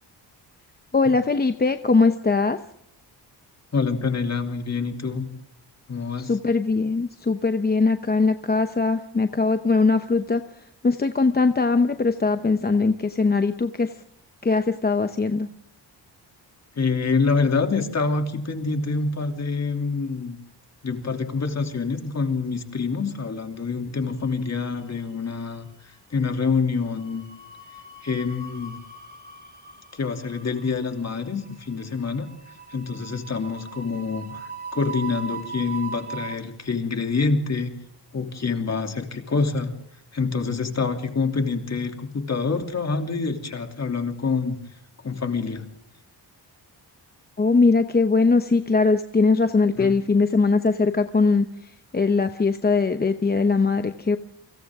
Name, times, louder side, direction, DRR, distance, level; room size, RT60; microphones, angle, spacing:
voice 1, 0.9-2.6 6.2-10.4 10.8-13.9 14.4-15.5 47.4-51.5 51.9-54.2, left 4 dB, 20° left, 8 dB, 0.8 m, -21 dB
voice 2, 3.7-5.3 5.9-6.4 16.8-20.4 20.8-27.2 28.0-28.8 29.9-32.3 32.7-37.7 38.1-39.7 40.1-44.6 45.0-45.7 49.8-50.0, left 4 dB, 35° left, 5 dB, 2.9 m, -26 dB
sound 1, 24.3-25.1 25.3-25.6 26.8-36.3, right 5 dB, 20° right, 2.9 m, -40 dB
30.0 x 25.0 x 3.7 m, 0.70 s
wide cardioid pair, 150°, 43 cm